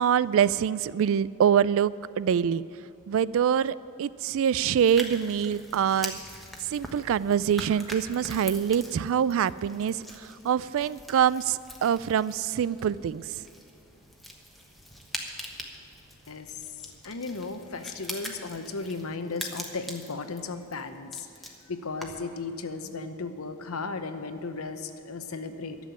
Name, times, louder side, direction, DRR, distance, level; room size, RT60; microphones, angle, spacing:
voice 1, 0.0-2.6 3.1-6.2 6.7-13.4, right 8 dB, 65° right, 18 dB, 0.3 m, -25 dB
sound 1, 4.8-22.3, equal, ahead, 1.1 m, -43 dB
voice 2, 16.3-25.8, left 4 dB, 70° left, 9 dB, 0.8 m, -36 dB
11.5 x 7.5 x 9.8 m, 2.6 s
head